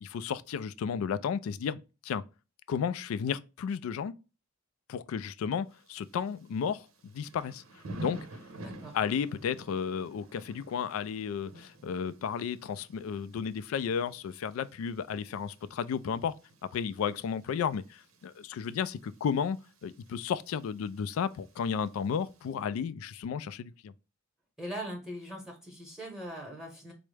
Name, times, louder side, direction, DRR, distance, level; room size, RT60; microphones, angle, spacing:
voice 1, 0.0-2.2 2.7-4.1 4.9-7.6 8.0-8.3 8.9-16.3 16.7-23.9, left 7 dB, 85° left, 0.3 m, -33 dB
Thunder / Rain, 5.7-22.6, right 1 dB, 80° right, 0.7 m, -51 dB
voice 2, 8.6-9.0 24.6-26.9, equal, 5° right, 0.8 m, -41 dB
4.5 x 2.0 x 3.2 m
head